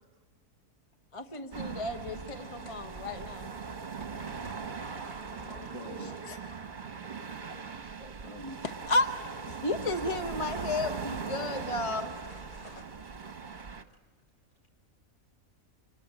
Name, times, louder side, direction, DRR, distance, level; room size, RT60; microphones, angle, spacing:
voice 1, 1.1-3.5 5.7-6.1 8.0-9.1 9.4-12.1, left 2 dB, 25° left, 7 dB, 0.9 m, -33 dB
sound 1, 1.5-13.8, right 5 dB, 35° right, 1.2 m, -40 dB
voice 2, 3.6-6.0 7.0-7.3 11.8-14.2 14.5-14.6, left 1 dB, 85° left, 1 dB, 5.0 m, -57 dB
voice 3, 4.8-6.6, right 1 dB, 45° left, 1 dB, 8.4 m, -48 dB
26.0 x 22.0 x 8.7 m, 1.3 s
omnidirectional pair, 1.4 m